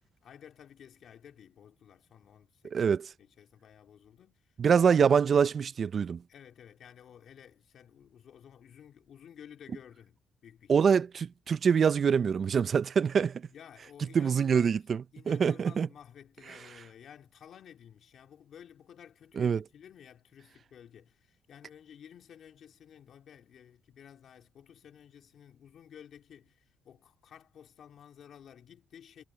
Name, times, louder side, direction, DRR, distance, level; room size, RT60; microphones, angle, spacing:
voice 1, 0.2-5.0 6.3-10.7 13.5-14.8 15.1-29.2, left 9 dB, 65° left, 2.4 m, -53 dB
voice 2, 2.7-3.1 4.6-6.2 10.7-13.4 14.1-15.9 19.4-19.6, right 6 dB, 50° right, 0.5 m, -25 dB
cardioid pair, 90°, 0 cm